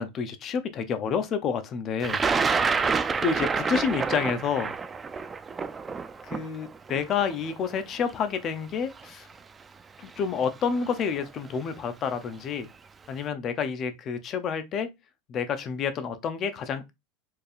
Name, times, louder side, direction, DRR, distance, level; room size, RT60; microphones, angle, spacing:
voice 1, 0.0-2.5 3.2-4.7 6.2-9.3 10.0-12.7 13.1-14.9 15.3-16.9, left 6 dB, 35° left, 0.6 m, -29 dB
Thunder, 2.0-8.0 9.0-9.1 10.2-10.4 10.8-11.2, right 5 dB, 20° right, 0.3 m, -28 dB
4.5 x 3.3 x 2.5 m
supercardioid pair, 145°, 0 cm